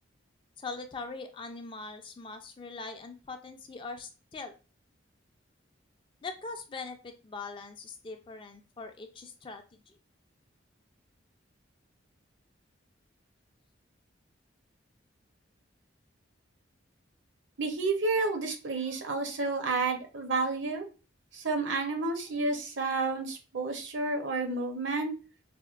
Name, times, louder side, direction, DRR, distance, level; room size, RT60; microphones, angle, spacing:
voice 1, 0.6-4.6 6.2-9.8, left 4 dB, 25° left, 6 dB, 0.3 m, -42 dB
voice 2, 17.6-20.9 21.3-25.1, right 3 dB, 70° right, 5 dB, 0.7 m, -30 dB
4.2 x 2.2 x 2.4 m, 0.33 s
head